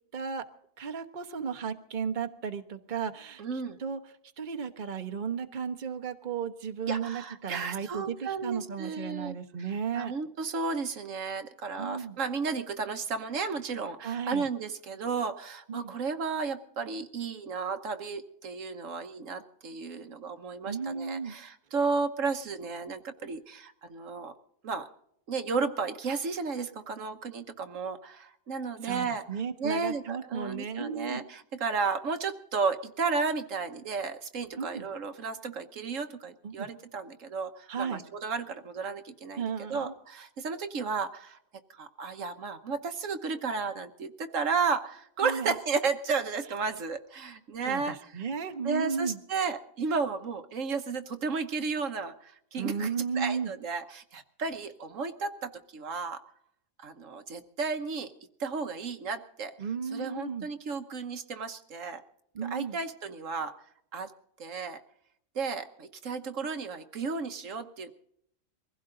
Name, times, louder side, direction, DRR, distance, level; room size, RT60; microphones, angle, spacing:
voice 1, 0.1-0.4 0.8-4.0 4.4-10.1 11.8-12.2 14.0-14.5 15.7-15.9 20.7-21.4 28.8-31.2 34.5-34.9 36.4-36.7 37.7-38.0 39.4-39.9 45.2-45.5 47.6-49.2 52.5-53.5 59.6-60.5 62.3-62.8, right 6 dB, 40° right, 8 dB, 1.2 m, -34 dB
voice 2, 3.4-3.8 6.9-9.3 9.9-24.3 24.6-24.9 25.3-29.2 29.6-41.4 41.7-48.2 48.6-52.9 53.2-56.2 56.8-58.1 58.4-59.5 59.9-62.0 62.4-63.5 63.9-64.1 64.4-64.8 65.3-67.9, right 4 dB, 70° right, 8 dB, 1.4 m, -33 dB
23.0 x 16.0 x 3.9 m, 0.69 s
omnidirectional pair, 1.4 m